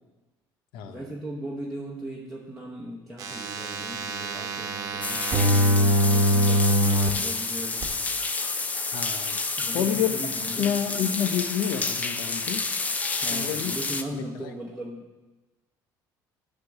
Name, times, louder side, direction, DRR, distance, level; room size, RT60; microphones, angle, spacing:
voice 1, 0.9-7.9 9.6-10.7 13.2-15.1, right 1 dB, ahead, -5 dB, 1.1 m, -38 dB
sound 1, 3.2-7.1 7.8-7.9, equal, 45° right, 1.1 m, -23 dB
sound 2, 5.0-14.0, left 3 dB, 20° left, 0.5 m, -29 dB
voice 2, 8.9-9.4 9.7-10.2 10.6-12.6 13.3-13.8 14.1-14.5, left 9 dB, 80° left, 8 dB, 0.9 m, -28 dB
11.0 x 3.8 x 7.2 m, 1.1 s
cardioid pair, 135°, 8 cm